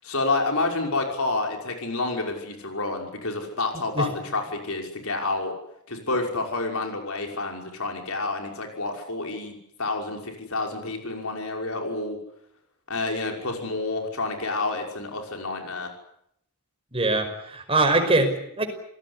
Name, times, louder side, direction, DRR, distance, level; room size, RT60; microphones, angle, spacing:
voice 1, 0.0-5.5 5.9-12.2 12.9-15.9, left 3 dB, 70° left, 3 dB, 5.8 m, -29 dB
voice 2, 16.9-18.6, right 2 dB, 25° right, 5 dB, 5.4 m, -22 dB
28.0 x 18.0 x 9.9 m, 0.75 s
head